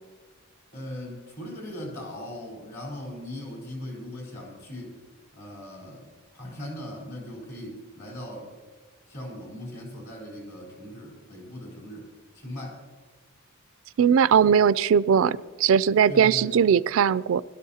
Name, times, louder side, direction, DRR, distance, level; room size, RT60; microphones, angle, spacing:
voice 1, 0.7-5.0 5.3-8.5 9.1-12.1 12.3-12.8 16.1-16.6, left 1 dB, 50° left, -1 dB, 3.9 m, -39 dB
voice 2, 14.0-17.4, right 7 dB, 65° right, 19 dB, 0.3 m, -20 dB
21.0 x 12.5 x 2.8 m, 1.5 s
head